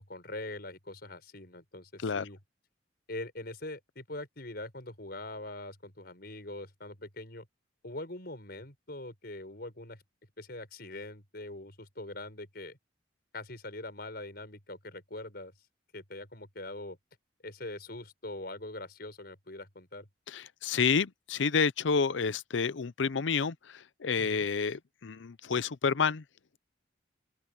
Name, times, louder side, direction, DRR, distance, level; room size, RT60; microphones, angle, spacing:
voice 1, 0.0-2.4 3.1-7.5 7.8-10.0 10.4-12.8 13.3-15.5 15.9-17.0 17.4-20.1 24.2-24.5, left 2 dB, 55° left, 6.3 m, -43 dB
voice 2, 20.3-26.2, left 5 dB, 80° left, 0.6 m, -29 dB
open air
head